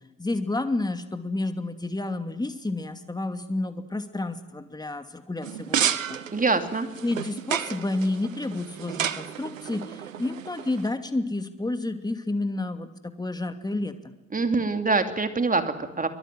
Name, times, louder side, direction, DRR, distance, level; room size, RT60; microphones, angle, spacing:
voice 1, 0.2-6.2 7.0-14.1, left 2 dB, 10° left, 8 dB, 2.4 m, -30 dB
sound 1, 5.4-10.9, right 9 dB, 85° right, 0.9 m, -31 dB
voice 2, 6.3-6.9 14.3-16.1, right 3 dB, 20° right, 7 dB, 2.8 m, -24 dB
23.5 x 23.5 x 7.7 m, 1.0 s
figure-of-eight pair, 50°, 39 cm